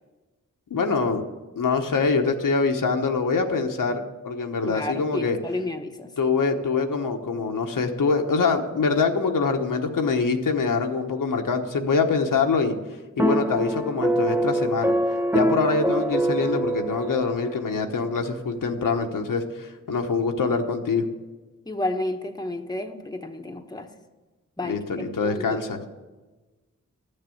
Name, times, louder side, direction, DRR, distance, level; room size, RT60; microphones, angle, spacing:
voice 1, 0.7-1.2 1.6-5.4 6.2-12.8 13.2-14.9 15.3-21.0 24.6-25.8, left 4 dB, 85° left, 4 dB, 1.1 m, -24 dB
voice 2, 4.7-6.1 21.7-23.9 24.6-25.6, left 2 dB, 15° left, 4 dB, 1.0 m, -31 dB
sound 1, 13.2-17.7, right 1 dB, 5° right, 0.5 m, -24 dB
13.0 x 6.7 x 8.4 m, 1.2 s
wide cardioid pair, 70°, 32 cm